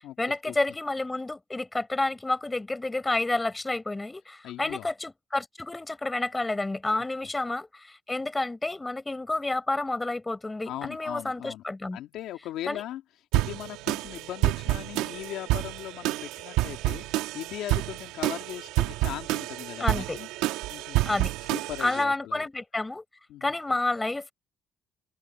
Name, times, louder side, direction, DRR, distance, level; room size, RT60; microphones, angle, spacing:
voice 1, 0.2-12.0 12.7-12.8 19.8-20.2 21.0-21.3 21.8-23.0 23.4-24.3, left 2 dB, 20° left, 7.0 m, -30 dB
voice 2, 4.4-4.9 10.7-11.6 11.9-13.0 13.3-20.3 20.7-21.2 21.5-22.4 23.3-23.5, left 13 dB, 80° left, 2.5 m, -39 dB
sound 1, 13.3-22.0, right 17 dB, 90° right, 2.6 m, -29 dB
open air
supercardioid pair, 65°, 0 cm